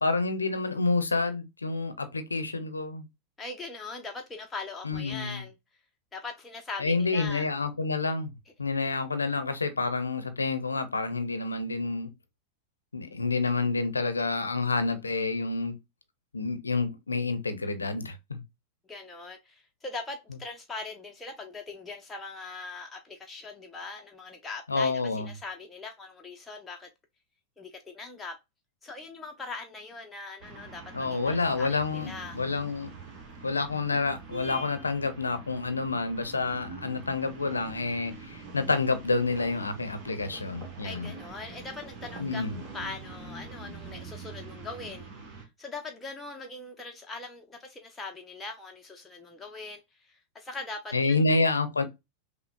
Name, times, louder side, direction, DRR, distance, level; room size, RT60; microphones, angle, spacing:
voice 1, 0.0-3.1 4.8-5.4 6.8-12.1 12.9-15.8 16.3-18.4 24.7-25.3 30.9-32.9 33.4-41.1 42.2-42.6 50.9-51.8, left 3 dB, 75° left, 0.5 m, -28 dB
voice 2, 3.4-5.5 6.1-7.5 18.9-26.9 27.6-28.4 28.8-32.4 40.8-45.1 45.3-51.3, left 3 dB, 10° left, 0.5 m, -41 dB
sound 1, 30.4-45.4, right 4 dB, 40° right, 1.2 m, -44 dB
5.6 x 2.0 x 2.2 m
figure-of-eight pair, 90°, 0 cm